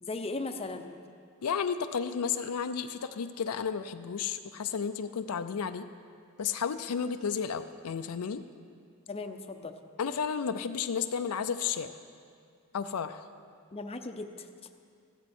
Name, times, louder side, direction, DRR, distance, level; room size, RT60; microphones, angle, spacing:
voice 1, 0.0-1.0 9.1-9.8 13.7-14.5, left 3 dB, 25° left, 6 dB, 0.6 m, -37 dB
voice 2, 1.4-5.9 6.4-8.4 10.0-11.9 12.7-13.2, left 6 dB, 75° left, 9 dB, 0.5 m, -32 dB
15.0 x 12.5 x 4.3 m, 2.3 s
head